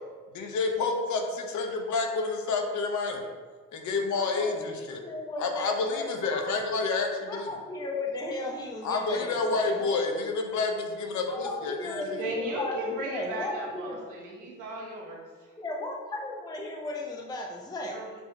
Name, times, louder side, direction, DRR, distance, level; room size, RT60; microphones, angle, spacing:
voice 1, 0.3-3.2 3.7-5.0 5.4-7.5 8.8-12.0, left 3 dB, 75° left, 2 dB, 0.7 m, -29 dB
voice 2, 4.1-4.7 5.0-6.7 7.3-10.1 11.3-14.0 15.6-18.1, left 2 dB, 15° left, 0 dB, 0.5 m, -36 dB
voice 3, 12.1-15.5 17.8-18.1, right 1 dB, 80° right, -3 dB, 1.2 m, -36 dB
6.9 x 2.8 x 2.2 m, 1.5 s
cardioid pair, 90°, 30 cm